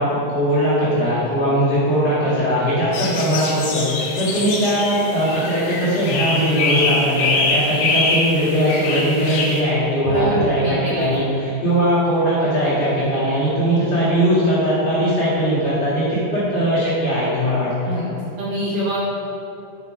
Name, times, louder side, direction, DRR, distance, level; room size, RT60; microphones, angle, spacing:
voice 1, 0.0-17.9, equal, 45° left, -11 dB, 2.7 m, -20 dB
sound 1, 2.9-9.6, left 3 dB, 90° left, 3.3 m, -23 dB
voice 2, 10.0-11.2 11.6-11.7 17.9-18.0 18.4-19.0, equal, 60° right, -9 dB, 2.7 m, -24 dB
8.3 x 5.3 x 4.9 m, 2.8 s
omnidirectional pair, 4.8 m